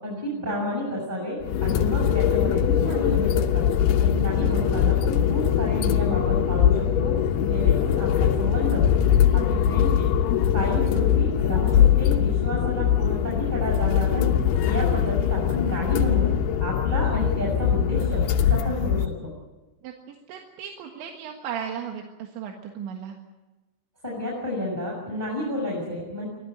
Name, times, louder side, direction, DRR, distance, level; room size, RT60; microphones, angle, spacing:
voice 1, 0.0-3.7 4.0-7.1 7.4-8.9 9.3-10.1 10.5-14.3 14.6-16.3 16.6-19.3 24.0-26.3, left 1 dB, 10° right, -3 dB, 6.4 m, -30 dB
sound 1, 1.4-19.1, left 9 dB, 70° left, 2.9 m, -22 dB
voice 2, 19.8-23.2, right 8 dB, 90° right, 2 dB, 4.0 m, -36 dB
24.5 x 15.5 x 9.2 m, 1.1 s
omnidirectional pair, 5.1 m